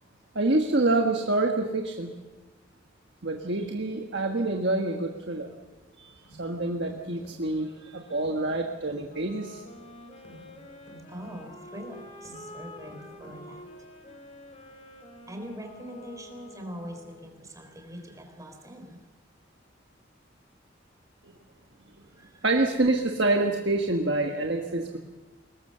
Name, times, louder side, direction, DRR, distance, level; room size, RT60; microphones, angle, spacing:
voice 1, 0.3-2.2 3.2-5.5 6.0-6.1 6.4-9.6 22.4-25.0, right 2 dB, 65° right, 3 dB, 1.5 m, -26 dB
sound 1, 6.0-14.0, right 1 dB, 85° left, 7.8 m, -52 dB
voice 2, 7.6-8.1 11.1-13.7 15.3-19.0 22.0-22.5, equal, 20° right, 4 dB, 4.0 m, -43 dB
Wind instrument woodwind instrument, 9.1-17.4, left 1 dB, 35° left, 3.1 m, -48 dB
22.5 x 19.0 x 6.8 m, 1.2 s
head